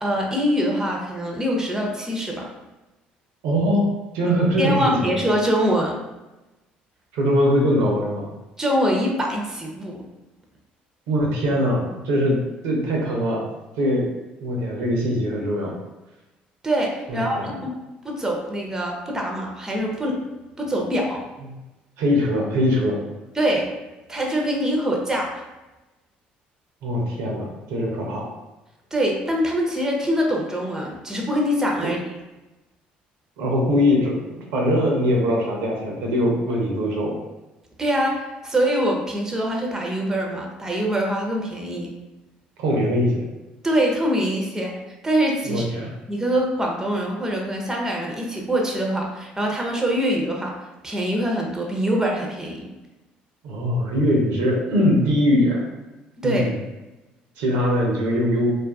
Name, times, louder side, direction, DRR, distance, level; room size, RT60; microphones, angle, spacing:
voice 1, 0.0-2.5 4.3-6.0 8.6-10.0 16.6-17.7 18.0-20.2 20.6-21.3 23.3-23.7 24.1-25.4 28.9-32.0 37.8-41.9 43.6-44.8 45.0-45.7 46.1-50.6 50.8-52.7 56.2-56.5, equal, 10° right, 0 dB, 0.6 m, -24 dB
voice 2, 3.4-5.1 7.1-8.3 11.1-12.4 12.6-13.4 13.8-14.1 14.4-15.7 17.1-17.5 22.0-23.0 26.8-28.3 33.4-34.1 34.5-37.2 42.6-43.2 45.5-45.9 53.4-55.7 56.2-56.5 57.4-58.5, equal, 75° right, -1 dB, 0.6 m, -21 dB
2.5 x 2.4 x 2.3 m, 1.0 s
hypercardioid pair, 60°, 4 cm